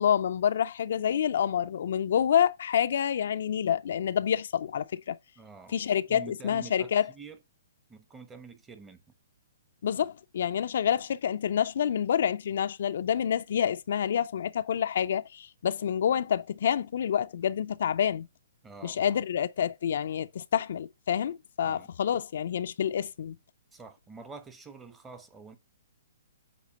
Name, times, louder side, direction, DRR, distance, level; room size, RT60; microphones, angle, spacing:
voice 1, 0.0-5.2 5.7-7.1 9.8-18.3 18.8-23.3, left 9 dB, 65° left, 0.4 m, -28 dB
voice 2, 5.4-5.8 6.1-7.4 7.9-9.0 18.6-19.2 21.6-21.9 23.7-25.6, right 4 dB, 10° right, 0.9 m, -47 dB
8.3 x 2.9 x 5.3 m
hypercardioid pair, 140°, 0 cm